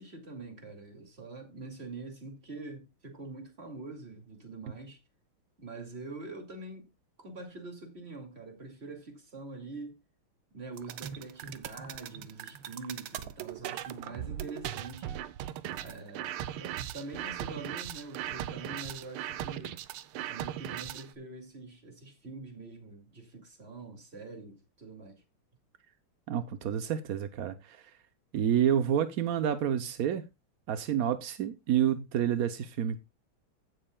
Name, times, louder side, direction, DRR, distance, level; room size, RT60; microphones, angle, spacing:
voice 1, 0.0-5.0 5.6-6.9 7.2-10.0 10.5-15.1 15.7-19.8 20.3-25.2, right 3 dB, 30° right, 2.5 m, -44 dB
sound 1, 10.8-21.1, right 11 dB, 85° right, 1.6 m, -38 dB
voice 2, 26.3-27.8 28.3-30.2 30.7-33.0, right 9 dB, 70° right, 0.8 m, -29 dB
16.0 x 7.7 x 2.2 m
omnidirectional pair, 2.4 m